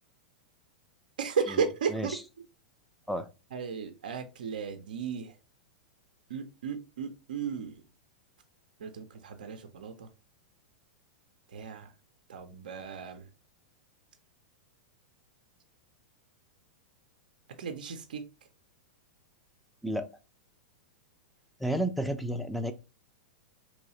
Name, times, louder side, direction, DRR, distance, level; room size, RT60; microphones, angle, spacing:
voice 1, 1.2-2.2 3.5-5.3 6.3-7.8 8.8-10.1 11.5-11.9 12.3-13.2 17.6-18.2, right 6 dB, 70° right, 0.5 m, -34 dB
voice 2, 21.6-22.7, right 1 dB, ahead, 0.4 m, -31 dB
3.0 x 3.0 x 2.8 m
hypercardioid pair, 100°, 5 cm